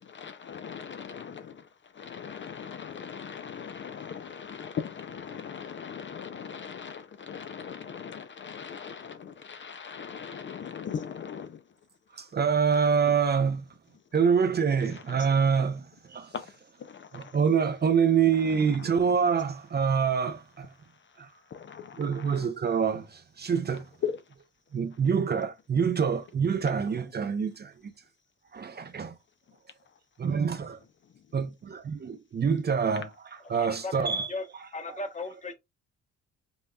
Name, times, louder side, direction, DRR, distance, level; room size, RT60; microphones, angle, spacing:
voice 1, 0.0-11.6 12.7-12.9 14.9-15.3 16.3-16.5 16.8-17.4 18.5-19.3 21.0-22.5 24.0-24.2, left 7 dB, 40° left, 0.5 m, -39 dB
voice 2, 12.2-13.7 14.1-16.3 17.1-20.7 21.2-21.3 22.0-23.9 24.7-27.7 28.5-29.1 30.2-30.8 31.3-31.5 32.0-33.1 33.5-34.3, right 6 dB, 35° right, 0.6 m, -26 dB
voice 3, 33.4-34.5 34.7-35.5, left 2 dB, 25° left, 1.0 m, -37 dB
5.4 x 2.9 x 2.2 m
cardioid pair, 90°, 30 cm